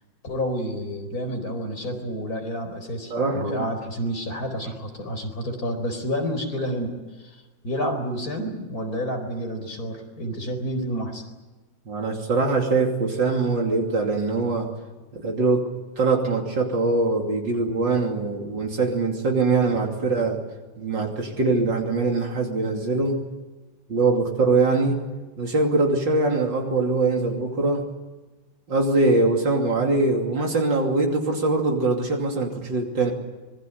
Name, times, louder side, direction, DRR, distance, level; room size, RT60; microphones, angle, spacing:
voice 1, 0.2-6.9 7.2-11.2, equal, 50° left, 4 dB, 4.8 m, -29 dB
voice 2, 3.1-3.7 11.9-14.7 15.1-15.7 16.0-20.4 20.8-23.2 23.9-25.0 25.4-27.9 28.7-33.1, right 3 dB, 75° right, 1 dB, 3.5 m, -22 dB
25.5 x 21.0 x 8.1 m, 1.2 s
omnidirectional pair, 2.0 m